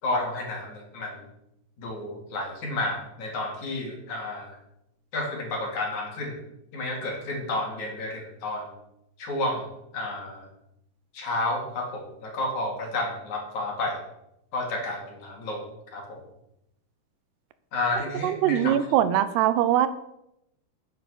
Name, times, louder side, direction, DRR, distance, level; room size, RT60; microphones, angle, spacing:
voice 1, 0.0-1.2 1.8-4.6 5.1-6.4 6.7-8.7 9.2-9.7 9.9-10.5 11.1-14.0 14.5-15.7 15.9-16.2 17.7-18.7, left 2 dB, 50° left, 0 dB, 3.7 m, -31 dB
voice 2, 18.2-19.9, right 11 dB, 90° right, 13 dB, 2.9 m, -22 dB
10.0 x 9.1 x 7.0 m, 0.82 s
omnidirectional pair, 4.6 m